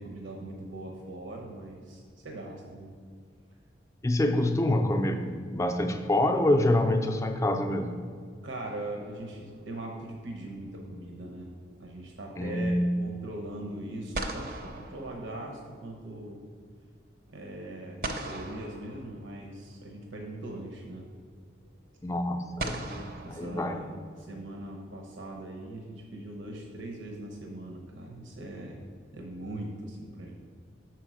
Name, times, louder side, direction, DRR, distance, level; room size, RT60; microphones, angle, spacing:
voice 1, 0.0-3.0 8.4-11.5 11.8-16.4 17.3-21.1 21.6-21.8 23.2-23.9 24.2-28.8 29.1-30.4, right 1 dB, 80° right, 1 dB, 0.8 m, -40 dB
voice 2, 4.0-7.9 12.4-12.9 22.0-23.9, left 1 dB, 15° left, 5 dB, 0.4 m, -26 dB
sound 1, 8.7-9.5 13.6-13.7 14.1-15.9 18.0-19.6 21.0-21.1 22.6-24.2, right 2 dB, 50° right, 0.6 m, -39 dB
5.9 x 4.5 x 6.2 m, 2.1 s
head